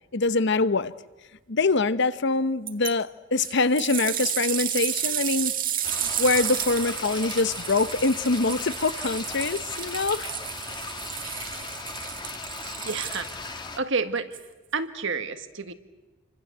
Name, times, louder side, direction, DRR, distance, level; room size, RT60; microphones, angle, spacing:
voice 1, 0.1-0.9 1.5-5.5 6.0-10.3, left 3 dB, 55° left, 0.9 m, -24 dB
sound 1, 2.7-2.9 3.4-13.6 14.3-14.4, right 11 dB, 40° right, 1.8 m, -32 dB
sound 2, 5.8-13.8, left 3 dB, 20° left, 1.6 m, -37 dB
voice 2, 12.8-13.3 13.8-14.4 14.7-15.7, right 4 dB, 60° right, 1.7 m, -29 dB
28.0 x 25.5 x 8.1 m
head